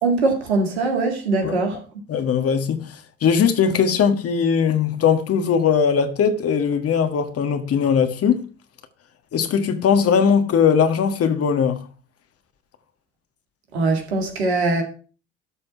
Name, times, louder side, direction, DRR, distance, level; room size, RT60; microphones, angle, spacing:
voice 1, 0.0-1.8 13.7-14.8, right 3 dB, 85° right, 2.1 m, -21 dB
voice 2, 2.1-2.9 3.2-8.4 9.3-11.8, left 7 dB, 45° left, 1.5 m, -19 dB
12.5 x 4.3 x 5.7 m
hypercardioid pair, 55°, 32 cm